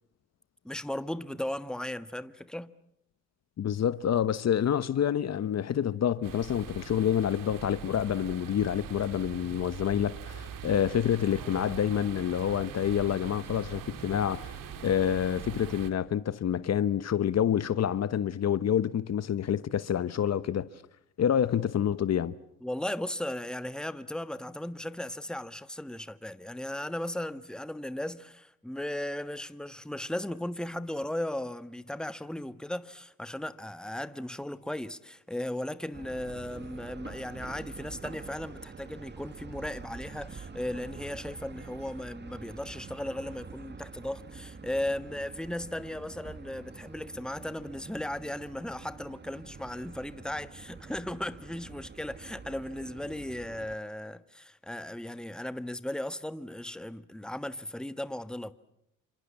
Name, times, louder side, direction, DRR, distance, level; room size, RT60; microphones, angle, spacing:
voice 1, 0.6-2.7 22.6-58.5, left 1 dB, ahead, 1.4 m, -36 dB
voice 2, 3.6-14.5 14.8-20.7 21.2-22.3, left 9 dB, 50° left, 1.0 m, -28 dB
sound 1, 6.2-15.9, right 8 dB, 70° right, 2.8 m, -42 dB
sound 2, 35.9-53.8, right 5 dB, 30° right, 1.7 m, -46 dB
29.5 x 26.0 x 7.3 m
supercardioid pair, 70°, 34 cm